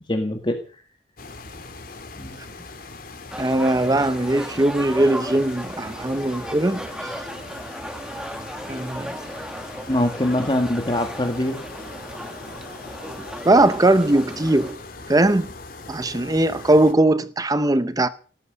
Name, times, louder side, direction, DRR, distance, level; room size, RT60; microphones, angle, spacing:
voice 1, 0.1-0.8 2.2-2.4 9.9-11.6, left 1 dB, 30° left, 2.0 m, -23 dB
sound 1, 1.2-16.9, left 3 dB, 55° left, 3.1 m, -40 dB
sound 2, 3.3-14.7, equal, 5° right, 2.0 m, -36 dB
voice 2, 3.4-7.1 8.7-9.1 13.4-14.8 15.1-15.5 15.9-18.1, right 1 dB, 20° right, 0.7 m, -20 dB
18.5 x 14.0 x 5.4 m
head